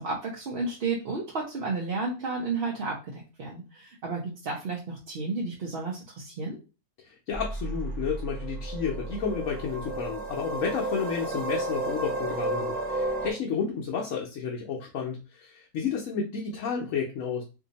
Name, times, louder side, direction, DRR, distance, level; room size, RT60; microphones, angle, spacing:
voice 1, 0.0-6.6, right 3 dB, 55° right, -1 dB, 0.7 m, -32 dB
voice 2, 7.0-17.4, left 6 dB, 70° left, 0 dB, 1.0 m, -31 dB
sound 1, 7.3-13.3, right 2 dB, 30° right, 1.1 m, -32 dB
2.7 x 2.6 x 3.9 m, 0.31 s
omnidirectional pair, 1.5 m